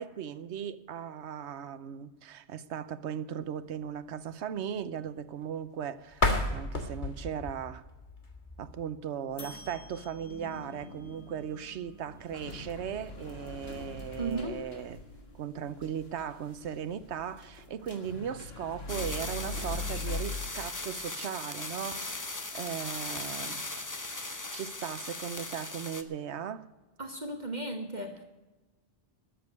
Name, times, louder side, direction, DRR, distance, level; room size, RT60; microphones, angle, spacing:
voice 1, 0.0-7.8 8.6-15.0 15.3-23.6 24.5-26.6, right 8 dB, 80° right, 1.0 m, -38 dB
sound 1, 6.1-9.0, left 2 dB, 45° left, 1.7 m, -32 dB
sound 2, 9.3-20.5, left 3 dB, 65° left, 1.9 m, -42 dB
voice 2, 14.2-14.6 27.0-28.2, right 2 dB, 40° right, 1.3 m, -35 dB
sound 3, 18.9-26.0, left 2 dB, 20° left, 0.9 m, -38 dB
13.5 x 7.7 x 9.3 m
omnidirectional pair, 1.1 m